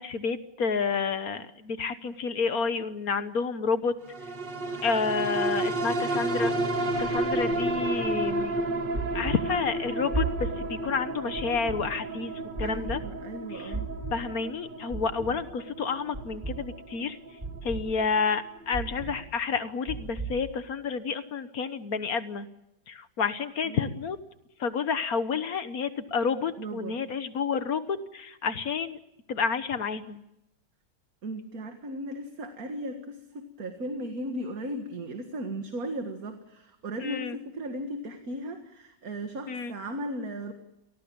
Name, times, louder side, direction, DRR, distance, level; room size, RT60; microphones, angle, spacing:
voice 1, 0.0-3.9 4.8-6.5 7.0-8.5 9.1-12.3 12.6-13.0 13.5-13.7 14.1-17.2 17.6-22.5 22.9-24.2 24.6-29.0 29.3-30.2 37.0-37.4 39.5-39.7, left 5 dB, 55° left, 11 dB, 1.5 m, -30 dB
sound 1, 4.1-18.8 19.2-19.3, right 2 dB, 75° right, 2.3 m, -32 dB
sound 2, 8.9-9.3 10.1-10.5 11.4-11.8 12.6-12.9 13.7-14.1 14.9-15.3 16.1-16.5 17.4-17.8 18.7-19.1 19.9-20.3, right 3 dB, 20° right, 6.1 m, -32 dB
voice 2, 12.6-13.9 23.6-23.9 26.6-27.0 31.2-40.5, right 1 dB, 50° right, 6 dB, 2.2 m, -36 dB
28.0 x 18.5 x 8.8 m, 0.86 s
omnidirectional pair, 1.9 m